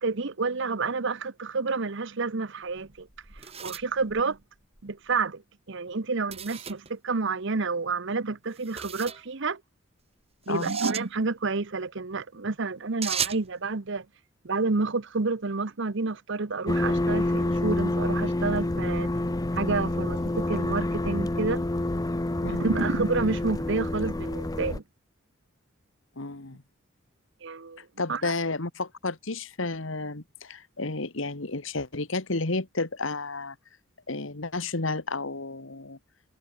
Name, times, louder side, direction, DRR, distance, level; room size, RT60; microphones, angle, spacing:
voice 1, 0.0-3.1 3.3-4.4 4.8-5.4 5.7-9.6 10.5-14.0 14.4-19.1 19.5-21.6 22.5-24.8 27.4-27.8 28.1-28.4, right 4 dB, 60° right, 0.9 m, -29 dB
sound 1, 2.7-4.9 6.3-6.9 8.5-9.2 10.5-11.1 13.0-13.5, right 8 dB, 30° right, 3.9 m, -35 dB
sound 2, 16.7-24.8, left 1 dB, 15° left, 0.6 m, -28 dB
voice 2, 26.2-26.6 28.0-33.6 34.1-36.0, left 3 dB, 65° left, 1.7 m, -31 dB
head